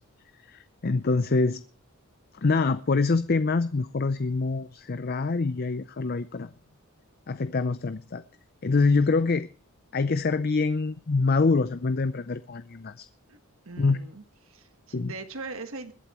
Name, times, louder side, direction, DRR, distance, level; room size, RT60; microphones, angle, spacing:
voice 1, 0.4-1.6 2.3-6.5 7.3-8.2 8.6-9.5 9.9-13.1 13.8-14.0 14.9-15.1, left 3 dB, 45° left, 0.5 m, -25 dB
voice 2, 13.6-15.9, right 3 dB, 65° right, 1.3 m, -40 dB
21.5 x 12.0 x 3.0 m
head